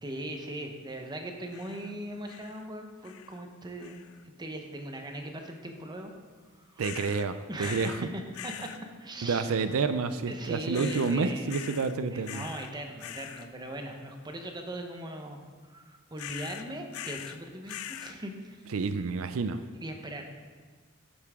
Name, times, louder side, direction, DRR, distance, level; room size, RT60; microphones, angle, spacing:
voice 1, 0.0-4.1 4.4-6.1 6.7-6.9 7.5-8.7 9.0-9.5 10.3-11.5 12.1-15.4 15.7-18.6 19.8-20.3, right 1 dB, 20° right, 4 dB, 0.9 m, -39 dB
sound 1, 1.5-1.9 2.3-2.7 3.0-3.4 3.8-4.2 6.8-7.3 7.6-8.0 8.3-8.8 10.7-11.2 11.5-11.9 12.2-12.7 13.0-13.5 16.2-17.4 17.7-18.2, left 11 dB, 80° left, 0.4 m, -42 dB
voice 2, 6.8-8.0 9.2-12.5 18.7-19.6, right 4 dB, 70° right, 11 dB, 0.4 m, -29 dB
10.5 x 8.4 x 3.6 m, 1.5 s
head